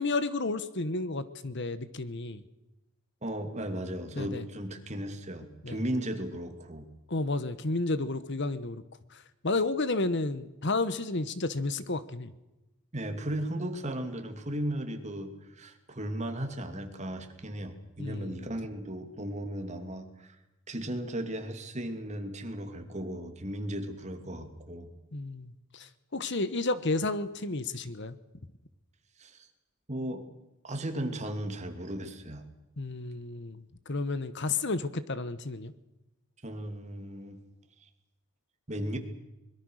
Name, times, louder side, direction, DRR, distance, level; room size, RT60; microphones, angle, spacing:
voice 1, 0.0-2.4 4.1-4.4 5.6-5.8 7.1-8.8 9.1-12.3 18.0-18.3 25.1-28.2 32.8-35.7, left 3 dB, 55° left, 14 dB, 1.2 m, -32 dB
voice 2, 3.2-6.9 12.9-20.4 20.7-24.9 29.2-29.5 29.9-30.2 30.6-32.5 36.4-37.4 37.8-37.9 38.7-39.0, right 1 dB, 30° right, 6 dB, 2.7 m, -36 dB
24.0 x 22.5 x 6.5 m, 0.98 s
head